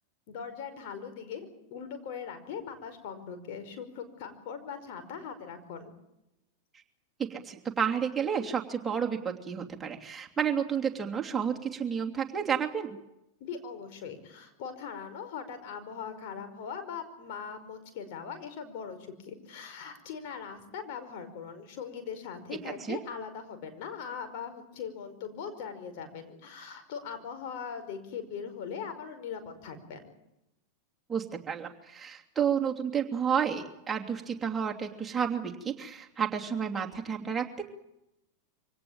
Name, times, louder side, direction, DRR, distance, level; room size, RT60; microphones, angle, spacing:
voice 1, 0.3-5.9 13.4-30.1, left 6 dB, 60° left, 8 dB, 5.2 m, -40 dB
voice 2, 7.2-13.0 22.9-23.0 31.1-37.6, right 7 dB, 15° right, 1 dB, 2.9 m, -31 dB
25.0 x 18.0 x 8.8 m, 0.87 s
hypercardioid pair, 100°, 0 cm